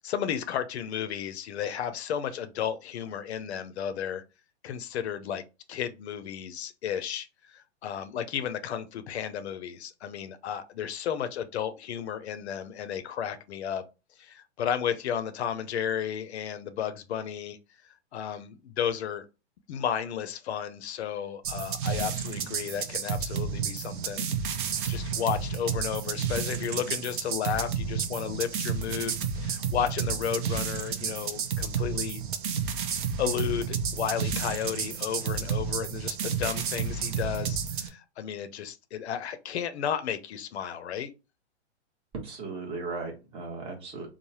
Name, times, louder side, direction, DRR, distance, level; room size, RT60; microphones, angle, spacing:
voice 1, 0.0-4.2 4.6-13.8 14.2-17.6 18.1-19.3 19.7-24.3 24.8-32.2 33.2-41.1, left 9 dB, 70° left, 0.5 m, -33 dB
sound 1, 21.4-37.9, right 7 dB, 50° right, 0.6 m, -31 dB
voice 2, 42.1-44.1, right 3 dB, 15° right, 0.8 m, -36 dB
3.2 x 2.0 x 2.7 m
hypercardioid pair, 140°, 34 cm